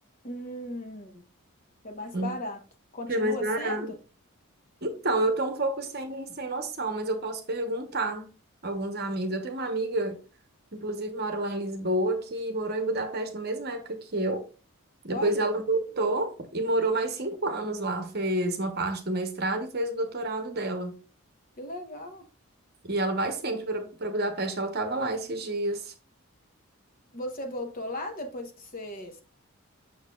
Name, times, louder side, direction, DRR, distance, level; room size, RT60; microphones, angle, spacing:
voice 1, 0.2-1.2 1.8-2.6 2.9-4.0 15.1-15.5 21.6-22.2 27.1-29.2, left 1 dB, 40° left, 1.0 m, -36 dB
voice 2, 3.1-3.9 4.8-8.3 8.6-10.2 10.7-14.5 15.0-20.9 22.8-25.9, right 2 dB, 45° right, 1.0 m, -29 dB
6.5 x 6.5 x 2.3 m
head